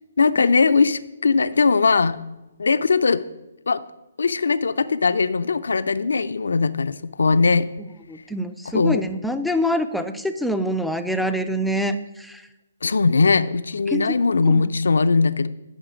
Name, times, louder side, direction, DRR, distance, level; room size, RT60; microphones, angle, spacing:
voice 1, 0.2-2.2 2.6-3.2 3.7-3.8 4.2-7.7 8.7-9.0 12.8-15.5, left 4 dB, 75° left, 13 dB, 0.4 m, -19 dB
voice 2, 8.1-12.4 13.9-14.2 14.5-14.6, equal, ahead, 7 dB, 0.4 m, -25 dB
10.0 x 3.7 x 6.1 m, 1.0 s
figure-of-eight pair, 140°, 0 cm